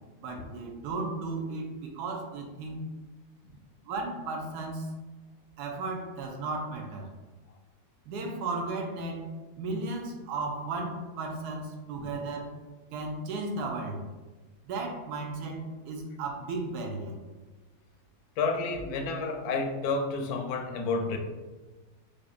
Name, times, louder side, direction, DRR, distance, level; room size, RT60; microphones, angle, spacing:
voice 1, 0.2-2.9 3.9-4.9 5.6-7.1 8.1-9.3 9.6-12.5 12.9-14.0 14.6-17.2, right 3 dB, 85° right, 2 dB, 1.2 m, -35 dB
voice 2, 18.4-21.2, left 4 dB, 75° left, 3 dB, 1.0 m, -30 dB
4.8 x 2.5 x 2.4 m, 1.2 s
omnidirectional pair, 1.7 m